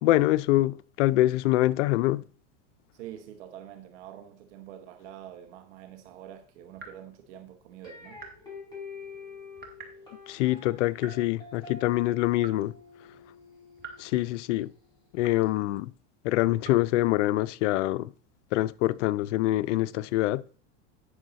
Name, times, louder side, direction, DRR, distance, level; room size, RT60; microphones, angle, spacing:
voice 1, 0.0-2.2 10.3-12.7 14.0-14.7 15.1-15.9 16.2-18.1 18.5-20.4, left 16 dB, 70° left, 0.5 m, -25 dB
voice 2, 2.9-8.2, right 11 dB, 65° right, 1.0 m, -46 dB
sound 1, 6.7-7.0 8.2-8.5 9.6-10.0 11.0-11.2 12.4-12.7 13.8-14.1 15.2-15.6 16.6-16.9, right 5 dB, 25° right, 1.8 m, -46 dB
sound 2, 7.8-14.9, left 4 dB, 10° left, 4.8 m, -47 dB
9.1 x 6.3 x 3.9 m
supercardioid pair, 125°, 38 cm